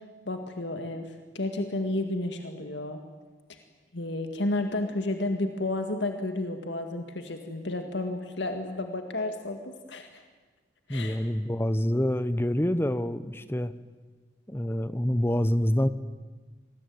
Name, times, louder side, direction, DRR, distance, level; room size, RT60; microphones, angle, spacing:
voice 1, 0.3-3.0 3.5-3.6 3.9-10.2 10.9-11.2, left 2 dB, 65° left, 5 dB, 2.0 m, -32 dB
voice 2, 10.9-13.7 14.5-15.9, equal, 10° left, 13 dB, 0.9 m, -26 dB
27.0 x 20.5 x 9.4 m, 1.3 s
head